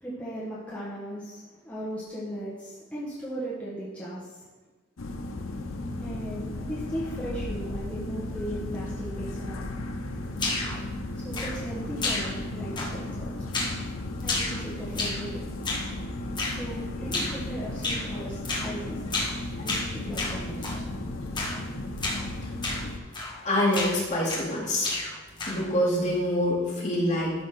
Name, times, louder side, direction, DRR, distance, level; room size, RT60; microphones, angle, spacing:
voice 1, 0.0-4.4 6.0-9.7 11.2-13.3 14.2-15.4 16.5-19.2 19.6-20.7, right 1 dB, 5° left, -9 dB, 1.7 m, -37 dB
sound 1, 5.0-23.0, left 1 dB, 90° left, 0.8 m, -35 dB
sound 2, 10.4-10.8 11.3-11.7 12.0-12.5 12.8-13.1 13.5-13.8 14.2-15.3 15.6-15.9 16.4-16.6 17.1-17.4 17.8-18.1 18.4-18.7 19.1-19.4 19.7-20.8 21.3-21.6 22.0-22.2 22.6-22.8 23.1-23.4 23.7-24.5 24.8-25.7, left 3 dB, 25° left, 1.5 m, -31 dB
voice 2, 23.4-24.9 25.5-27.3, left 1 dB, 40° left, -6 dB, 2.8 m, -25 dB
12.5 x 5.4 x 3.9 m, 1.2 s
head